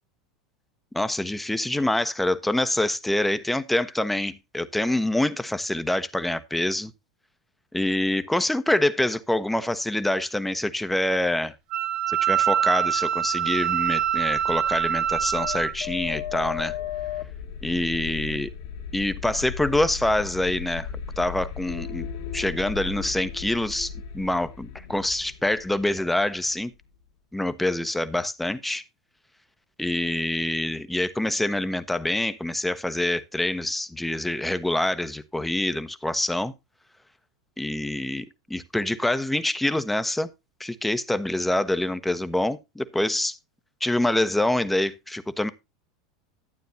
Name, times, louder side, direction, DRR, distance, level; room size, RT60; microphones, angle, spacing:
voice 1, 0.9-6.9 7.7-11.5 12.1-16.8 17.6-18.5 18.9-20.9 21.2-22.1 22.3-26.7 27.3-28.8 29.8-36.5 37.6-40.3 40.6-43.3 43.8-45.5, left 1 dB, 5° left, 1.0 m, -26 dB
Wind instrument woodwind instrument, 11.7-15.7, right 9 dB, 45° right, 1.0 m, -24 dB
sound 1, 13.3-27.0, left 8 dB, 60° left, 1.8 m, -36 dB
12.0 x 9.2 x 2.8 m
hypercardioid pair, 85°, 2 cm